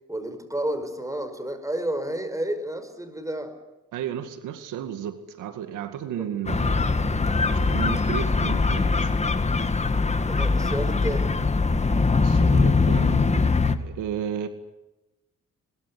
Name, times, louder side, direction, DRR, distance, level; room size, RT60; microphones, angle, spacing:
voice 1, 0.1-3.5 6.2-6.4 10.3-11.3, right 1 dB, 10° right, 5.5 m, -31 dB
voice 2, 3.9-6.9 7.5-9.1 12.2-14.5, right 9 dB, 85° right, 2.2 m, -33 dB
sound 1, 6.5-13.8, left 4 dB, 20° left, 1.8 m, -22 dB
22.0 x 22.0 x 10.0 m
cardioid pair, 90°, 30 cm